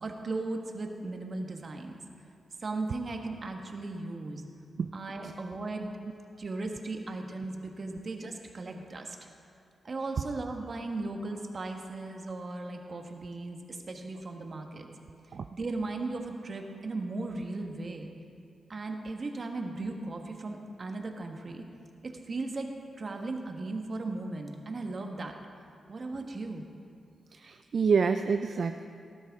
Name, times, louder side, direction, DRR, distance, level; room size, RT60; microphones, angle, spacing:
voice 1, 0.0-2.0 2.6-4.4 4.9-5.9 6.4-9.3 9.8-14.9 15.5-18.1 18.7-21.6 22.0-25.4 25.9-26.6, right 2 dB, 45° right, 3 dB, 1.3 m, -37 dB
voice 2, 27.3-28.9, right 5 dB, 60° right, 7 dB, 0.4 m, -27 dB
18.5 x 12.0 x 3.6 m, 2.4 s
cardioid pair, 100°, 0 cm